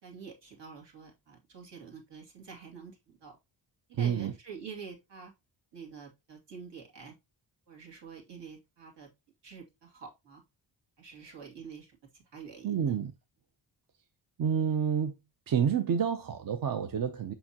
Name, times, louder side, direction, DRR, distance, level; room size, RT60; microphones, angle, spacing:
voice 1, 0.0-3.3 4.0-5.3 5.7-7.1 7.7-9.1 9.4-10.4 11.0-12.0 12.3-13.0, right 6 dB, 70° right, 2.6 m, -47 dB
voice 2, 3.9-4.3 12.6-13.1 14.4-15.2 15.5-17.3, right 7 dB, 50° right, 0.7 m, -29 dB
7.0 x 5.3 x 2.9 m
wide cardioid pair, 125°, 44 cm